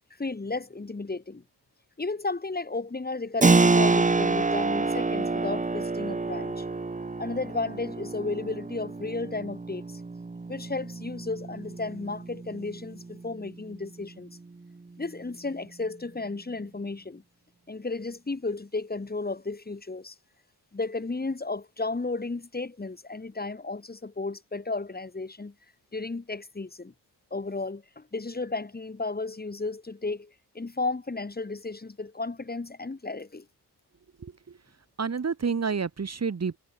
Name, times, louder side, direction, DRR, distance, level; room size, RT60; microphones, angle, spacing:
voice 1, 0.2-1.4 2.0-6.6 7.2-10.0 10.5-14.3 15.0-17.2 17.7-20.1 20.7-25.5 25.9-26.9 27.3-33.5, left 3 dB, 25° left, 4.3 m, -33 dB
Keyboard (musical), 3.4-13.8, right 3 dB, 20° right, 1.3 m, -27 dB
voice 2, 34.2-34.6 35.0-36.6, right 5 dB, 40° right, 2.2 m, -29 dB
wide cardioid pair, 160°, 40 cm